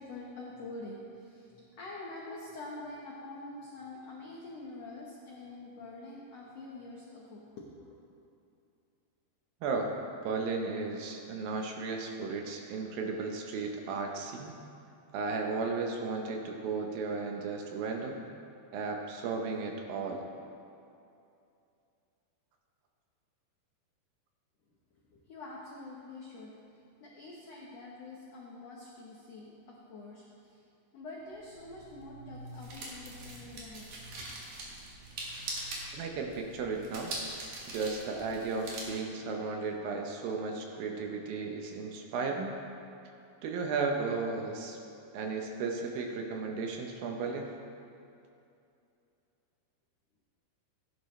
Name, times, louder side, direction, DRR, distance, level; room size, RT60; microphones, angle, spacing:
voice 1, 0.0-8.0 25.1-26.5 27.0-30.6 30.9-34.0, left 2 dB, 80° left, -3 dB, 1.4 m, -46 dB
voice 2, 10.2-14.5 15.1-18.2 18.7-20.2 35.9-37.1 37.7-42.5 43.4-44.8 45.1-47.5, right 4 dB, 75° right, 2 dB, 2.4 m, -34 dB
sound 1, 31.3-38.8, right 2 dB, 55° right, 3.1 m, -43 dB
15.5 x 11.0 x 3.2 m, 2.6 s
omnidirectional pair, 4.7 m